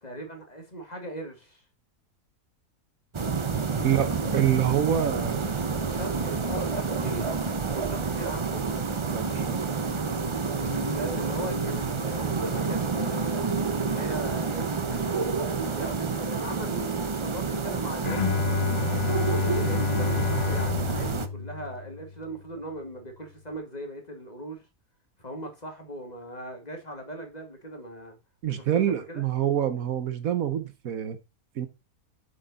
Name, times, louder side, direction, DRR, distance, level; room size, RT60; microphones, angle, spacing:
voice 1, 0.0-1.6 3.6-4.3 5.9-8.6 10.5-13.5 13.8-18.3 19.5-24.7 25.2-28.2 28.5-29.2, right 1 dB, 25° left, 2.0 m, -39 dB
sound 1, 3.1-21.3, right 5 dB, 45° right, 0.4 m, -29 dB
voice 2, 3.8-5.4 9.1-9.6 28.4-31.2 31.5-31.7, right 10 dB, 65° right, 1.3 m, -26 dB
Bowed string instrument, 18.0-22.2, left 5 dB, 70° left, 0.4 m, -28 dB
8.1 x 6.7 x 4.0 m
omnidirectional pair, 1.6 m